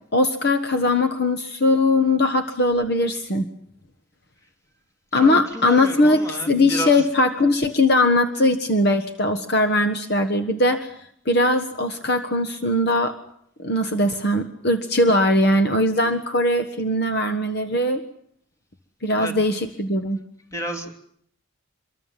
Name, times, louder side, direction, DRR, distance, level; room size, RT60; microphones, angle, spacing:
voice 1, 0.1-3.5 5.1-10.9 11.2-13.2 13.6-18.0 19.0-20.2, left 1 dB, 55° left, 7 dB, 1.4 m, -20 dB
voice 2, 5.1-7.0 19.2-19.3 20.5-20.9, equal, 15° left, 4 dB, 3.0 m, -31 dB
25.5 x 23.5 x 7.6 m, 0.68 s
head